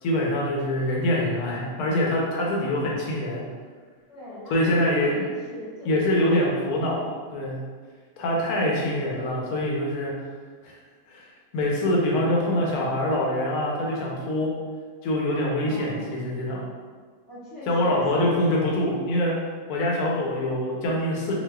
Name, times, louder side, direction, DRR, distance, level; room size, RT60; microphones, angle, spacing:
voice 1, 0.0-3.4 4.5-5.2 5.8-7.6 8.2-10.1 10.6-10.7 11.1-11.3 11.5-14.5 15.0-16.6 17.7-19.4 19.7-21.3, left 1 dB, 85° left, -3 dB, 1.1 m, -24 dB
voice 2, 4.1-6.8 15.6-16.3 17.3-18.3, left 1 dB, 50° left, -10 dB, 0.9 m, -40 dB
3.9 x 2.6 x 2.2 m, 1.5 s
omnidirectional pair, 1.5 m